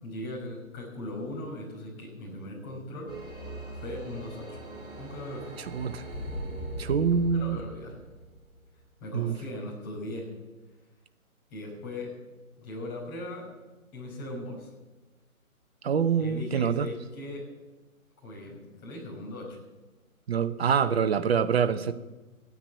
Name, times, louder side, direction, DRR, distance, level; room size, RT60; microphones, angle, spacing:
voice 1, 0.0-3.2 3.7-4.6 5.0-5.6 7.1-7.9 9.0-10.3 11.5-12.1 12.6-13.5 13.9-14.7 16.2-17.5 18.2-19.6, left 1 dB, 20° left, -3 dB, 5.1 m, -39 dB
sound 1, 3.1-8.8, right 1 dB, 10° right, 3.1 m, -40 dB
voice 2, 5.7-6.0 6.8-7.6 9.1-9.4 15.8-16.9 20.3-21.9, right 7 dB, 45° right, 11 dB, 1.0 m, -25 dB
15.0 x 9.8 x 8.4 m, 1.1 s
hypercardioid pair, 150°, 43 cm